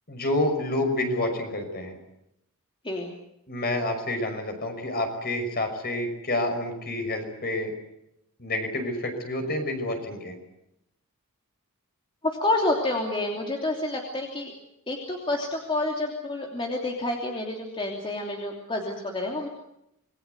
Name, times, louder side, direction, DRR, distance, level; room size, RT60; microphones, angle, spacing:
voice 1, 0.1-2.0 3.5-7.7 8.4-10.3, left 1 dB, 45° left, 5 dB, 5.9 m, -28 dB
voice 2, 12.2-14.5 14.9-19.5, left 2 dB, 25° left, 0 dB, 3.0 m, -28 dB
27.0 x 21.5 x 8.2 m, 0.82 s
head